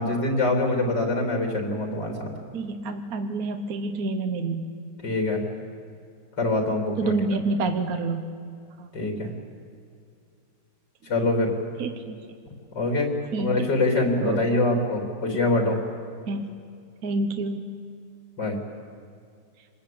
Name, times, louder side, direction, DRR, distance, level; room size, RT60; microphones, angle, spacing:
voice 1, 0.0-2.3 5.0-5.4 6.4-7.2 8.9-9.3 11.1-11.5 12.7-13.1 13.3-15.8 18.4-18.6, left 2 dB, 80° left, 2 dB, 4.0 m, -24 dB
voice 2, 2.5-4.7 7.0-8.3 8.8-8.9 11.8-12.2 13.3-13.7 14.2-14.4 15.3-15.4 16.3-16.5 17.0-17.6, right 3 dB, 60° right, 7 dB, 1.6 m, -28 dB
27.0 x 21.0 x 8.7 m, 2.4 s
omnidirectional pair, 1.8 m